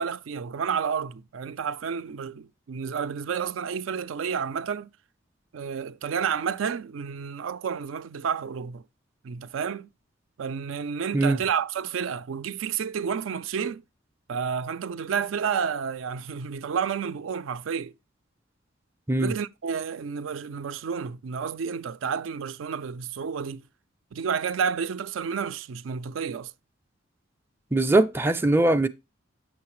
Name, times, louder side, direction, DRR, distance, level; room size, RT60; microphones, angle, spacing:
voice 1, 0.0-4.9 5.5-8.8 9.2-9.9 10.4-13.8 14.3-17.9 19.2-23.6 24.1-26.5, right 6 dB, 80° right, 0.4 m, -30 dB
voice 2, 27.7-28.9, right 2 dB, 10° right, 0.4 m, -21 dB
8.5 x 6.4 x 3.0 m
head